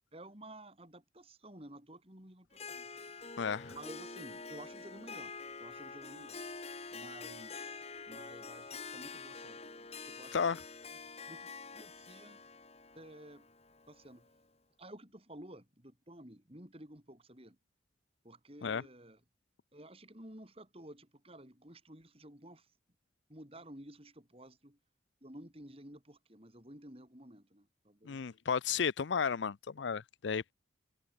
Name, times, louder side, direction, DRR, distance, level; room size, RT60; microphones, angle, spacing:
voice 1, 0.1-2.9 3.7-5.3 5.6-6.4 6.9-10.6 11.3-12.4 12.9-13.5 13.9-14.3 14.8-17.6 18.2-19.2 19.7-22.7 23.3-24.8 25.2-28.3, right 1 dB, 30° right, 4.7 m, -53 dB
Harp, 2.5-14.4, left 4 dB, 35° left, 2.9 m, -47 dB
voice 2, 3.4-3.7 10.3-10.6 18.6-18.8 28.0-30.5, left 6 dB, 75° left, 0.5 m, -33 dB
head